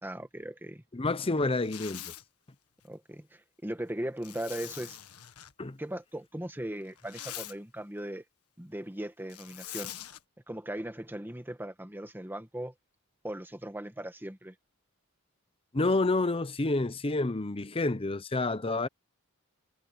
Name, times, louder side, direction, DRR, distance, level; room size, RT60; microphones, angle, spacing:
voice 1, 0.0-0.8 2.8-5.0 5.8-8.2 8.6-9.9 10.5-12.7 13.2-14.5, right 1 dB, 10° right, 1.5 m, -38 dB
voice 2, 0.9-2.1 5.6-5.8 15.7-18.9, left 2 dB, 25° left, 0.8 m, -29 dB
Zipper (clothing), 1.5-2.2 4.2-5.5 6.8-7.6 9.3-10.2, left 12 dB, 85° left, 1.5 m, -43 dB
head